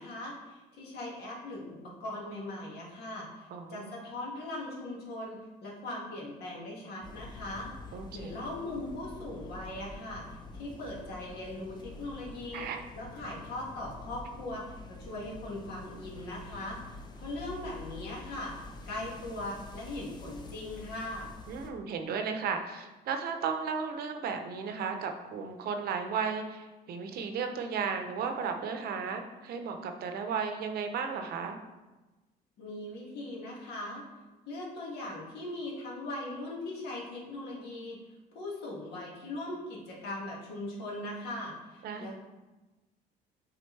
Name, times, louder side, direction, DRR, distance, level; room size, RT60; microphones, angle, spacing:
voice 1, 0.0-12.7 12.9-16.8 17.2-21.3 32.6-34.0 34.5-38.0 38.3-42.2, left 1 dB, 75° left, -3 dB, 1.9 m, -40 dB
voice 2, 3.5-3.9 7.9-8.3 12.5-12.8 21.5-31.6 41.8-42.1, right 6 dB, 65° right, 6 dB, 0.8 m, -34 dB
sound 1, 7.0-21.7, left 2 dB, 25° left, 0.7 m, -47 dB
7.8 x 3.7 x 3.3 m, 1.1 s
cardioid pair, 110°, 17 cm